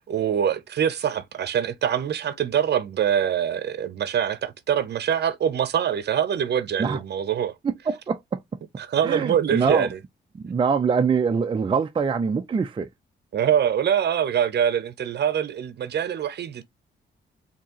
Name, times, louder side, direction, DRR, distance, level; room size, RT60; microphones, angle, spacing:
voice 1, 0.0-7.5 8.8-9.9 13.3-16.6, right 9 dB, 60° right, 0.7 m, -24 dB
voice 2, 7.6-8.4 9.0-9.9 10.3-12.9, right 5 dB, 25° right, 0.5 m, -24 dB
4.5 x 2.9 x 2.8 m
cardioid pair, 110°, 19 cm